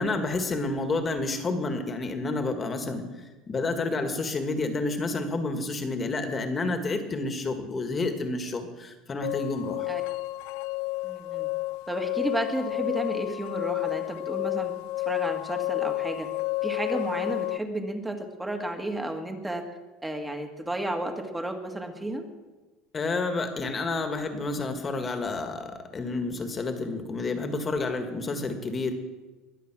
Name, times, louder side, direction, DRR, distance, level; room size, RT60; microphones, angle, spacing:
voice 1, 0.0-3.1 3.5-9.9 22.9-28.9, left 3 dB, 25° left, 6 dB, 1.9 m, -29 dB
sound 1, 9.2-17.6, left 21 dB, 70° left, 0.3 m, -31 dB
voice 2, 11.0-11.5 11.9-14.7 15.1-16.3 16.6-19.7 20.0-22.2, right 1 dB, 10° right, 5 dB, 1.8 m, -32 dB
21.5 x 8.1 x 6.2 m, 1.2 s
supercardioid pair, 135°, 0 cm